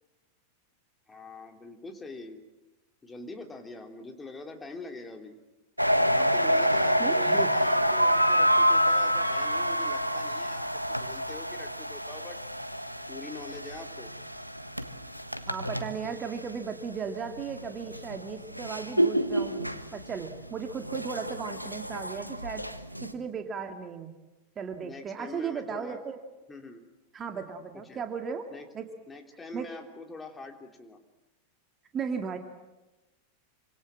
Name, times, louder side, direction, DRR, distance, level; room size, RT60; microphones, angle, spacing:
voice 1, 1.1-2.4 3.0-5.4 6.1-12.4 13.1-14.1 24.8-26.0 26.5-26.8 27.7-28.0 28.5-28.7 29.1-31.0, left 3 dB, 15° left, 4 dB, 3.3 m, -44 dB
sound 1, 5.8-16.8 17.2-23.1, equal, 90° right, 1.4 m, -28 dB
voice 2, 7.0-7.5 15.5-19.6 19.9-22.6 23.0-24.1 24.6-26.2 27.1-28.5 28.7-28.9 29.5-29.7 31.9-32.4, right 6 dB, 25° right, 5 dB, 2.1 m, -36 dB
27.5 x 26.0 x 7.6 m, 1.1 s
figure-of-eight pair, 90°, 0 cm